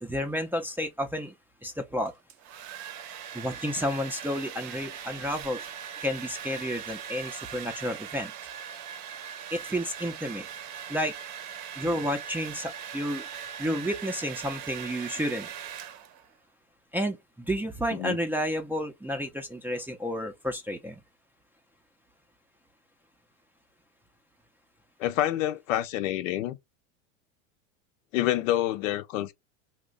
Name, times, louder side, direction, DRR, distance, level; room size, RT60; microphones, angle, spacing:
voice 1, 0.0-1.3 1.6-2.1 3.3-5.7 6.0-8.3 9.5-10.5 10.9-11.1 11.8-13.2 13.6-15.5 16.9-21.0, equal, 5° right, 0.4 m, -31 dB
Domestic sounds home sounds, 2.1-16.3, right 8 dB, 45° right, 0.7 m, -40 dB
voice 2, 25.0-26.6 28.1-29.3, left 13 dB, 75° left, 0.7 m, -27 dB
3.0 x 2.2 x 3.7 m
supercardioid pair, 110°, 39 cm